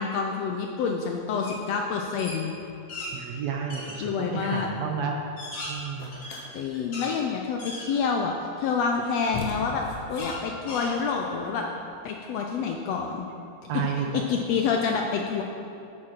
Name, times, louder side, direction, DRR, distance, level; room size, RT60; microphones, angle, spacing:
voice 1, 0.0-2.5 4.0-4.7 6.5-9.8 10.1-11.6 12.0-13.3 13.7-13.8 14.1-15.4, left 5 dB, 80° left, 2 dB, 1.5 m, -27 dB
sound 1, 1.4-1.6 1.9-3.1 3.7-4.0 4.6-4.7 5.2-7.1 7.6-8.3 8.8-8.9 10.2-11.4, left 2 dB, 45° left, 2.0 m, -38 dB
voice 2, 3.1-5.2 5.7-6.2 13.7-14.2, right 6 dB, 70° right, 1 dB, 1.7 m, -31 dB
sound 2, 6.0-6.4 8.7-8.8 9.3-11.9, left 3 dB, 60° left, 1.8 m, -37 dB
8.5 x 6.6 x 5.9 m, 2.6 s
omnidirectional pair, 3.4 m